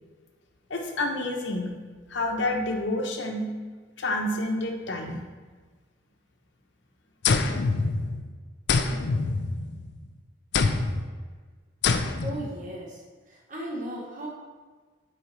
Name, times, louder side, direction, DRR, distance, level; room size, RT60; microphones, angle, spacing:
voice 1, 0.7-1.7 2.1-3.5 4.0-5.2, left 1 dB, 80° left, 2 dB, 0.9 m, -28 dB
sound 1, 7.2-8.3 8.7-10.0 10.5-11.1 11.8-12.5, left 4 dB, 65° left, 0.4 m, -25 dB
voice 2, 12.2-14.3, right 1 dB, 45° right, -3 dB, 0.8 m, -36 dB
7.3 x 4.8 x 3.2 m, 1.4 s
head